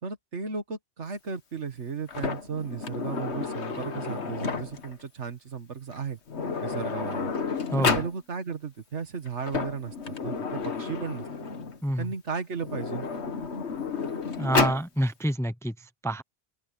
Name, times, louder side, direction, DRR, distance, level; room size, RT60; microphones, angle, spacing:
voice 1, 0.0-6.2 6.6-7.3 7.8-11.3 12.0-13.1, right 5 dB, 80° right, 2.0 m, -35 dB
Sliding door, 2.1-4.9 5.9-6.0 6.3-8.1 9.3-11.8 12.6-14.9, left 5 dB, 70° left, 1.8 m, -31 dB
voice 2, 14.4-15.7 16.0-16.2, right 1 dB, 5° left, 0.7 m, -27 dB
open air
omnidirectional pair, 1.2 m